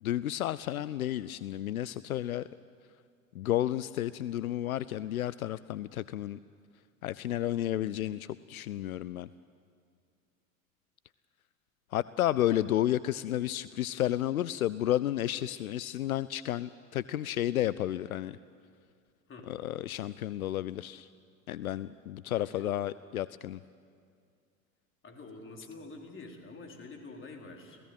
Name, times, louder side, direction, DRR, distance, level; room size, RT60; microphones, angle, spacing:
voice 1, 0.0-2.4 3.3-6.4 7.0-9.3 11.9-18.4 19.5-21.1 21.5-23.6, left 13 dB, 80° left, 18 dB, 0.6 m, -32 dB
voice 2, 22.3-22.7 25.0-27.8, left 3 dB, 30° left, 2 dB, 4.1 m, -47 dB
27.5 x 17.0 x 9.1 m, 2.2 s
figure-of-eight pair, 80°, 43 cm